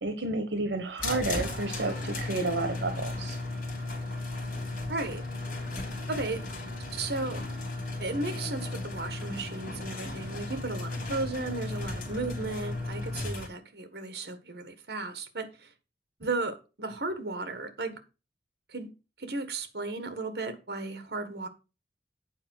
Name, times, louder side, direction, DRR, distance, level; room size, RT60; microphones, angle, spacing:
voice 1, 0.0-3.4, right 2 dB, 85° right, 1.2 m, -31 dB
sound 1, 1.0-13.5, left 2 dB, 50° left, 3.2 m, -35 dB
voice 2, 4.9-5.2 6.1-6.5 6.9-7.4 8.0-15.7 16.2-18.0 18.7-18.9 19.2-21.5, right 3 dB, 65° right, 1.6 m, -35 dB
8.9 x 4.6 x 6.5 m
head